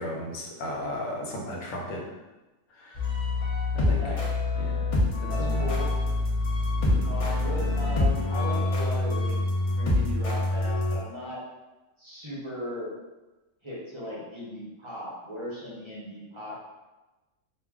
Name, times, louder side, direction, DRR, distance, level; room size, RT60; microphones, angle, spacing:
voice 1, 0.0-2.0 2.8-3.0 3.7-4.0 4.6-4.9 5.2-5.7 6.9-7.5, equal, 90° left, 0 dB, 1.0 m, -35 dB
sound 1, 2.9-11.0, left 2 dB, 55° left, 0.3 m, -26 dB
voice 2, 3.8-4.2 5.3-6.1 7.0-9.4 9.6-11.4 12.0-12.9 13.6-16.6, left 1 dB, 30° right, -7 dB, 0.6 m, -37 dB
Bowed string instrument, 5.9-9.1, left 3 dB, 40° left, 0.9 m, -41 dB
2.3 x 2.3 x 3.5 m, 1.1 s
omnidirectional pair, 1.4 m